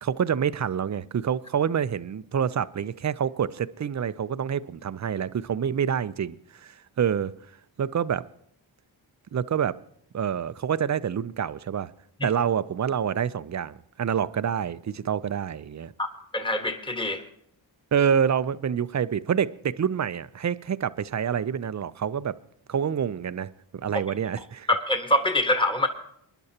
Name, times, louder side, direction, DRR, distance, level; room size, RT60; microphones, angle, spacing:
voice 1, 0.0-7.3 7.8-8.3 9.3-9.8 10.1-11.9 12.2-15.9 17.9-22.4 22.7-24.7, right 8 dB, 35° right, 0.5 m, -27 dB
voice 2, 16.0-17.2 24.7-25.9, left 1 dB, 10° left, 1.5 m, -24 dB
22.5 x 11.0 x 2.9 m
cardioid pair, 55°, 48 cm